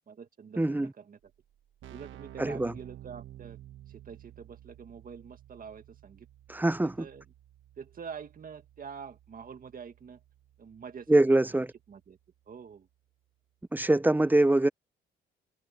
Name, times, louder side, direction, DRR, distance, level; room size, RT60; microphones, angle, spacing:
voice 1, 0.1-1.2 1.9-3.6 3.9-6.3 7.0-7.3 7.8-10.2 10.6-11.2 11.5-12.2 12.5-12.9, right 6 dB, 45° right, 2.0 m, -46 dB
voice 2, 0.6-0.9 2.4-2.7 6.5-7.0 11.1-11.7 13.7-14.7, right 1 dB, 10° right, 0.7 m, -24 dB
Keyboard (musical), 1.2-1.3 1.5-12.1, right 12 dB, 75° right, 1.5 m, -52 dB
cardioid pair, 90°, 20 cm